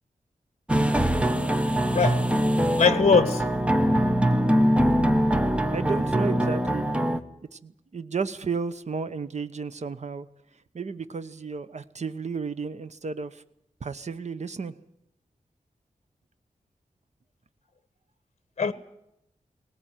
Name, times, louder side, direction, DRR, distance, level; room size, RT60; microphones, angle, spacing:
sound 1, 0.7-7.2, equal, 10° right, 1.0 m, -23 dB
voice 1, 1.9-2.3 2.8-3.5 18.6-18.7, left 5 dB, 50° left, 1.2 m, -21 dB
voice 2, 5.7-7.1 7.5-10.3 10.7-13.4 13.8-14.8, right 5 dB, 55° right, 1.0 m, -33 dB
19.0 x 18.0 x 9.1 m
wide cardioid pair, 115°, 14 cm